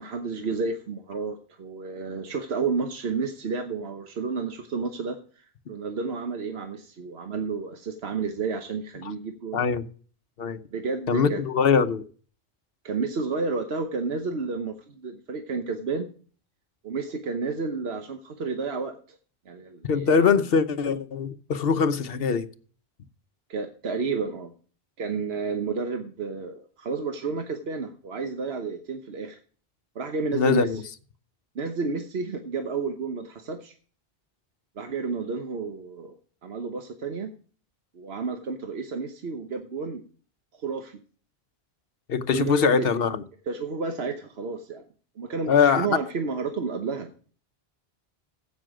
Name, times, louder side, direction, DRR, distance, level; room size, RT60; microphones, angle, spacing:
voice 1, 0.0-9.6 10.7-11.4 12.8-16.1 16.8-19.2 19.5-20.3 23.5-24.5 25.0-29.4 29.9-30.8 31.5-33.7 34.8-36.1 36.4-37.3 37.9-40.0 40.5-41.0 42.3-42.9 43.5-44.8 45.2-47.1, right 4 dB, 80° right, 1.3 m, -31 dB
voice 2, 9.5-9.8 10.4-10.6 11.1-12.0 19.8-22.5 30.3-30.8 42.1-43.2 45.5-46.0, left 6 dB, 70° left, 1.1 m, -22 dB
15.5 x 6.1 x 4.9 m
omnidirectional pair, 1.0 m